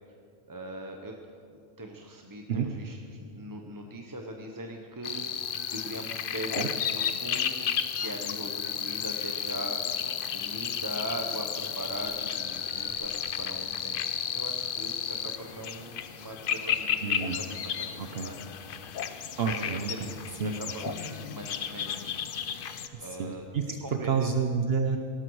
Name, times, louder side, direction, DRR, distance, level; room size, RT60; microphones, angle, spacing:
voice 1, 0.5-1.1 1.5-5.2 5.7-7.7 8.0-10.0 10.3-14.0 14.3-18.4 19.4-22.2 23.0-23.4 23.8-24.4, right 1 dB, 20° right, 2 dB, 0.7 m, -41 dB
sound 1, 5.0-22.9, left 8 dB, 55° left, 0.7 m, -33 dB
sound 2, 11.7-23.4, left 2 dB, 20° left, 2.4 m, -57 dB
voice 2, 17.0-17.4 18.0-18.3 19.4-19.9 20.4-20.5 22.9-25.0, right 6 dB, 55° right, 5 dB, 0.9 m, -29 dB
17.5 x 12.5 x 4.7 m, 2.4 s
omnidirectional pair, 1.3 m